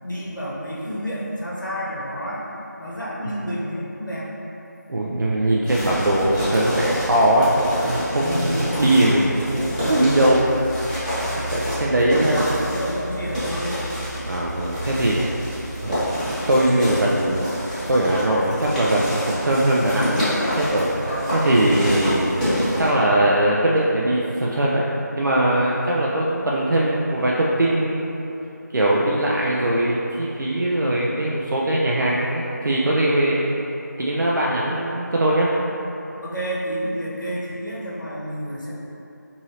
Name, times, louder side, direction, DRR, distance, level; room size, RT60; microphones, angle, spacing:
voice 1, 0.0-2.4 2.8-4.3 8.2-8.8 11.2-11.5 12.1-13.8 20.9-21.8 30.7-31.3 36.2-38.7, equal, 90° left, -6 dB, 0.9 m, -30 dB
voice 2, 4.9-10.4 11.3-12.5 14.2-15.2 15.8-17.5 17.9-20.3 20.6-20.9 21.4-22.5 22.8-24.8 25.1-28.2 28.7-33.4 34.0-35.5, right 1 dB, 85° right, -5 dB, 0.4 m, -21 dB
sound 1, 5.7-22.9, equal, 25° left, 1.0 m, -28 dB
3.0 x 2.7 x 2.8 m, 3.0 s
figure-of-eight pair, 175°, 10 cm